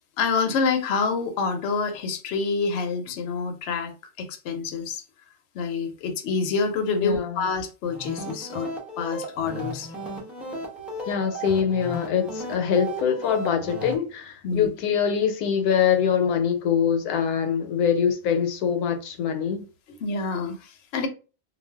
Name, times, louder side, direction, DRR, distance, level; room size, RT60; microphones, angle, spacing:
voice 1, 0.2-5.0 5.5-8.7 9.0-9.9 14.4-14.7 20.0-21.1, left 4 dB, 60° left, 0.7 m, -27 dB
voice 2, 7.0-7.4 11.0-19.7, left 7 dB, 80° left, 1.1 m, -24 dB
sound 1, 7.8-14.0, right 1 dB, ahead, 0.4 m, -35 dB
2.5 x 2.2 x 3.3 m
omnidirectional pair, 1.6 m